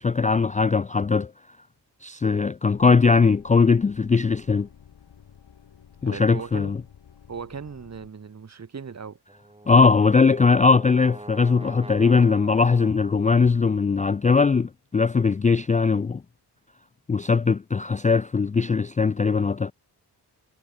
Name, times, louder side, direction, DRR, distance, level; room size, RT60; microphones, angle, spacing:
voice 1, 0.0-1.3 2.0-4.7 6.0-6.8 9.7-16.2 17.1-19.7, left 4 dB, 20° left, 0.3 m, -20 dB
sound 1, 2.7-8.1, left 8 dB, 70° left, 6.1 m, -52 dB
voice 2, 6.0-6.7 7.3-9.2, right 6 dB, 40° right, 2.0 m, -38 dB
Brass instrument, 9.3-13.5, right 2 dB, 15° right, 5.2 m, -44 dB
wide cardioid pair, 140°, 42 cm